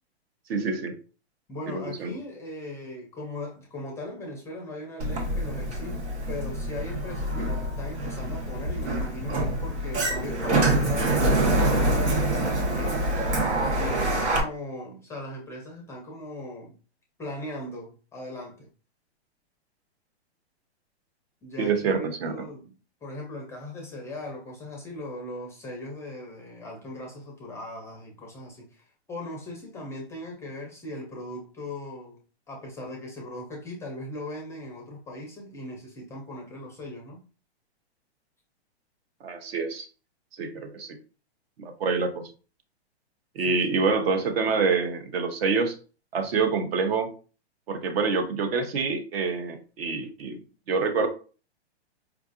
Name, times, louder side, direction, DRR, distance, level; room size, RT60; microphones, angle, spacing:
voice 1, 0.5-0.9 1.7-2.1 21.6-22.3 39.2-39.9 40.4-41.0 41.6-42.2 43.3-45.8 46.1-47.1 47.7-50.4 50.7-51.1, right 4 dB, 60° right, 8 dB, 0.9 m, -26 dB
voice 2, 1.5-13.1 13.3-16.8 17.2-18.7 21.4-22.7 23.0-32.2 32.5-37.2 43.5-43.6, left 1 dB, 10° left, 0 dB, 0.4 m, -39 dB
Sliding door, 5.0-14.4, right 1 dB, 85° right, 1.2 m, -26 dB
4.6 x 2.4 x 2.5 m, 0.37 s
hypercardioid pair, 140°, 33 cm